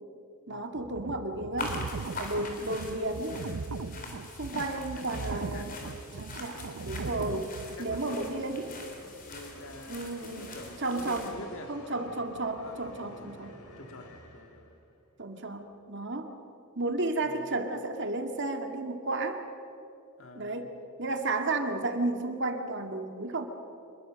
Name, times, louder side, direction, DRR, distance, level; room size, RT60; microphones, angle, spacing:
voice 1, 0.5-1.8 2.1-3.4 4.4-5.7 6.2-7.5 7.8-8.7 9.9-10.5 10.8-11.3 11.7-13.5 15.2-16.3 16.8-19.4 20.4-20.7 21.0-23.4, right 2 dB, 55° right, 5 dB, 2.0 m, -33 dB
sound 1, 0.7-8.0, right 4 dB, 75° right, 0.6 m, -39 dB
sound 2, 1.6-11.3, left 2 dB, 40° left, 3.8 m, -43 dB
voice 2, 3.9-4.3 4.7-6.0 7.7-11.8 12.6-14.7 17.2-17.5 20.2-20.7, left 2 dB, 60° left, 6 dB, 1.9 m, -47 dB
sound 3, 6.4-15.0, left 1 dB, 90° left, 3.2 m, -51 dB
26.0 x 22.0 x 6.4 m, 2.7 s
head